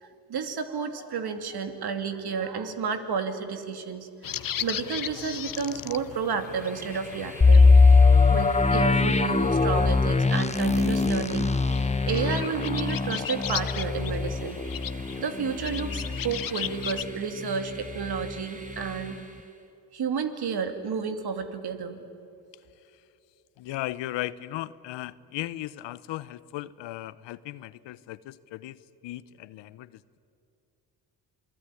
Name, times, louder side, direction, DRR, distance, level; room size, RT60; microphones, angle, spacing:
voice 1, 0.0-4.3 4.6-7.6 8.3-11.5 11.7-14.6 15.2-19.2 19.9-22.0, right 6 dB, 60° right, 8 dB, 2.7 m, -31 dB
sound 1, 4.2-17.0, left 10 dB, 50° left, 1.0 m, -38 dB
Train, 6.2-19.7, right 1 dB, 20° right, 3.3 m, -47 dB
sound 2, 7.4-17.1 17.5-17.6 18.1-18.3, left 4 dB, 15° left, 0.7 m, -21 dB
voice 2, 23.6-30.2, left 15 dB, 80° left, 18 dB, 0.9 m, -37 dB
28.5 x 19.5 x 9.9 m, 2.7 s
supercardioid pair, 60°, 43 cm